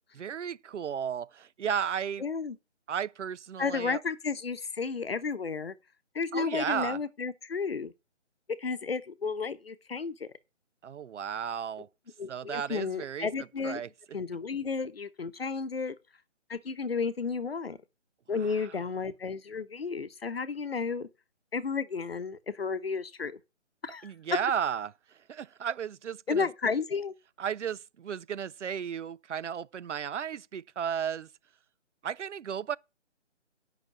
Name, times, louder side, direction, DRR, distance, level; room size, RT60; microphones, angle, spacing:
voice 1, 0.1-2.2 2.9-4.0 6.3-7.0 10.8-11.9 12.3-13.3 13.6-13.9 18.4-18.7 24.0-24.9 25.3-26.5 27.4-31.3 32.0-32.8, right 8 dB, 75° right, 0.5 m, -34 dB
voice 2, 2.2-2.6 3.6-5.7 6.1-7.9 8.6-10.3 12.2-13.8 14.1-15.9 16.5-17.8 18.3-21.1 21.5-23.4 23.8-24.1 26.3-27.1, left 5 dB, 55° left, 0.9 m, -32 dB
9.3 x 5.8 x 7.1 m
figure-of-eight pair, 170°, 36 cm